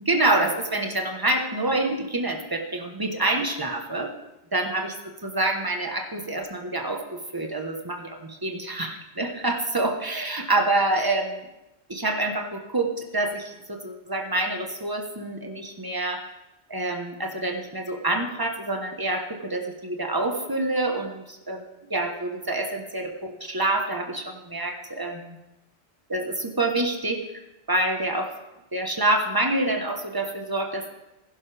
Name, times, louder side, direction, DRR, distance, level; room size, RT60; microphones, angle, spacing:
voice 1, 0.0-4.1 4.5-4.9 5.2-11.4 11.9-16.2 16.7-25.4 26.1-27.2 27.7-28.3 28.7-30.9, right 2 dB, 20° right, 3 dB, 1.3 m, -27 dB
16.5 x 10.5 x 3.5 m, 0.93 s
omnidirectional pair, 1.1 m